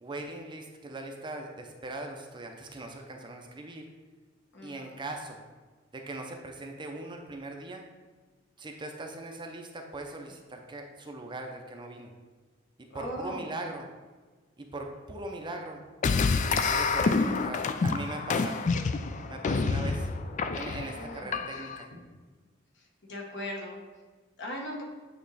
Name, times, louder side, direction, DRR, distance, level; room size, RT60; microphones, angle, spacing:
voice 1, 0.0-3.9 4.6-5.4 5.9-7.8 8.6-12.1 12.9-13.9 14.6-15.8 16.7-18.6 19.3-20.1 20.5-21.9, right 2 dB, 25° right, 2 dB, 0.6 m, -40 dB
voice 2, 4.5-4.8 12.9-13.5 20.8-21.4 23.1-23.8 24.4-24.8, equal, 60° left, 0 dB, 1.2 m, -38 dB
sound 1, 16.0-21.8, left 4 dB, 40° left, 0.3 m, -28 dB
8.5 x 3.0 x 4.0 m, 1.4 s
head